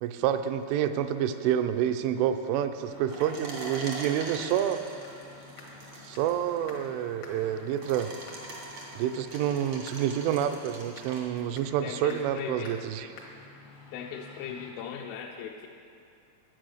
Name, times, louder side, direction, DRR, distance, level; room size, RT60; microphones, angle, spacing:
voice 1, 0.0-4.8 6.0-8.1 9.0-13.1, right 10 dB, 85° right, 9 dB, 3.0 m, -28 dB
sound 1, 2.8-14.7, left 3 dB, 70° left, 1.6 m, -50 dB
sound 2, 3.1-11.2, right 1 dB, 70° right, 1.1 m, -43 dB
voice 2, 11.8-12.7 13.9-15.7, left 8 dB, 90° left, -1 dB, 3.2 m, -38 dB
10.5 x 8.7 x 6.4 m, 2.5 s
omnidirectional pair, 5.5 m